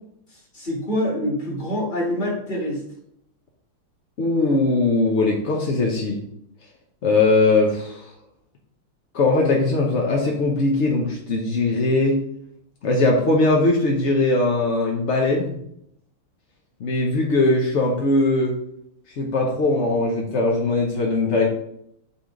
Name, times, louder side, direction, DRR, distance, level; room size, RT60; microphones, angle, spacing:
voice 1, 0.5-2.8, left 1 dB, 25° left, -4 dB, 1.9 m, -25 dB
voice 2, 4.2-6.2 7.0-8.1 9.1-12.2 12.8-15.6 16.8-18.5 19.2-21.5, left 2 dB, 60° left, -1 dB, 0.7 m, -20 dB
8.6 x 3.5 x 3.8 m, 0.74 s
omnidirectional pair, 2.4 m